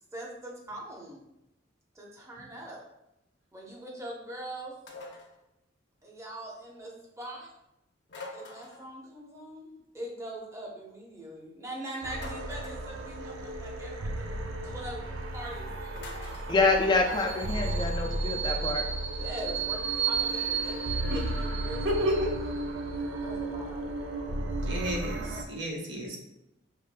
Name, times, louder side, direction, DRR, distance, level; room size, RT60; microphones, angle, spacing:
voice 1, 0.1-1.2 1.9-2.8 3.5-4.7 6.0-7.5 8.3-9.7 9.9-16.7 18.9-21.8 23.2-23.8, right 1 dB, 15° right, -2 dB, 0.8 m, -42 dB
sound 1, 4.9-5.4 8.1-8.9 12.2-12.9 16.0-16.5, left 3 dB, 65° left, 0.7 m, -45 dB
sound 2, 12.0-25.4, right 3 dB, 90° right, 0.5 m, -33 dB
voice 2, 16.5-18.9, left 3 dB, 25° left, 2 dB, 0.3 m, -26 dB
voice 3, 21.8-22.3 24.7-26.2, equal, 70° right, 0 dB, 0.9 m, -30 dB
5.0 x 3.2 x 2.2 m, 0.87 s
head